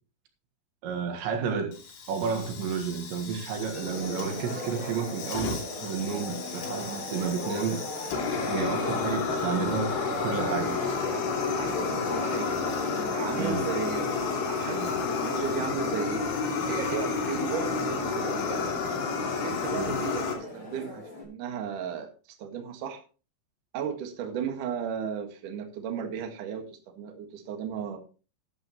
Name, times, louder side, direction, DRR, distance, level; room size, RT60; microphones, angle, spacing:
voice 1, 0.8-7.8 8.5-10.8 13.4-13.6 19.7-20.0, right 6 dB, 75° right, 3.9 m, -31 dB
Fire, 1.7-20.3, left 5 dB, 85° left, 5.2 m, -31 dB
sound 1, 3.7-21.2, left 1 dB, 30° left, 4.0 m, -37 dB
voice 2, 11.6-16.2 16.7-18.7 19.4-22.1 22.4-23.0 23.7-28.0, right 7 dB, 55° right, 2.8 m, -35 dB
13.0 x 11.5 x 3.0 m
omnidirectional pair, 5.3 m